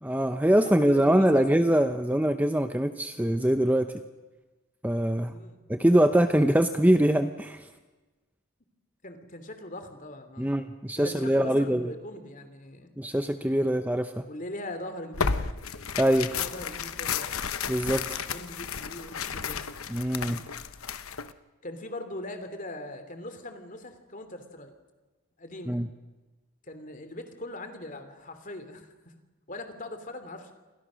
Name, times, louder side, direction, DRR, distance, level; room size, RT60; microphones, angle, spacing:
voice 1, 0.0-3.9 4.8-5.3 5.7-7.6 10.4-11.9 13.0-14.2 16.0-16.3 17.7-18.3 19.9-20.4 25.7-25.9, right 1 dB, 5° right, 8 dB, 0.7 m, -23 dB
voice 2, 0.6-1.7 5.3-5.6 9.0-10.5 11.0-12.9 13.5-13.8 14.3-15.5 16.4-17.4 18.2-19.7 20.2-20.9 21.6-24.7 25.4-25.8 26.6-29.1 29.5-30.5, left 1 dB, 35° left, 8 dB, 3.0 m, -41 dB
Tearing, 15.1-21.3, left 6 dB, 70° left, 1.0 m, -33 dB
29.0 x 25.0 x 6.4 m, 1.2 s
head